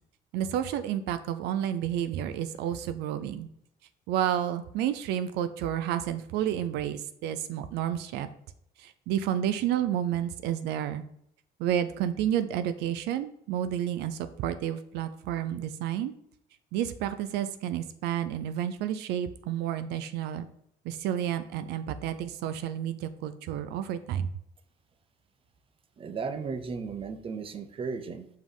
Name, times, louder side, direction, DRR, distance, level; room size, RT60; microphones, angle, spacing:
voice 1, 0.3-3.5 4.1-8.3 8.8-11.0 11.6-16.1 16.7-20.5 20.8-24.3, right 10 dB, 85° right, 12 dB, 0.5 m, -30 dB
voice 2, 26.0-28.3, right 5 dB, 35° right, 11 dB, 0.6 m, -35 dB
5.5 x 5.0 x 3.8 m, 0.74 s
cardioid pair, 110°, 17 cm